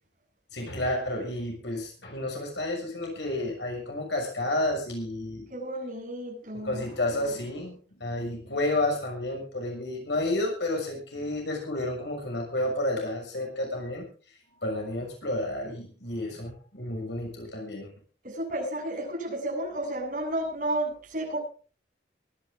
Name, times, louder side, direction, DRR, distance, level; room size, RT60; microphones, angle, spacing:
voice 1, 0.5-5.5 6.6-14.0 14.6-17.9, left 1 dB, 75° left, 1 dB, 6.3 m, -31 dB
voice 2, 5.5-6.8 18.2-21.4, right 1 dB, 45° right, 0 dB, 8.0 m, -32 dB
24.0 x 11.0 x 3.8 m, 0.38 s
head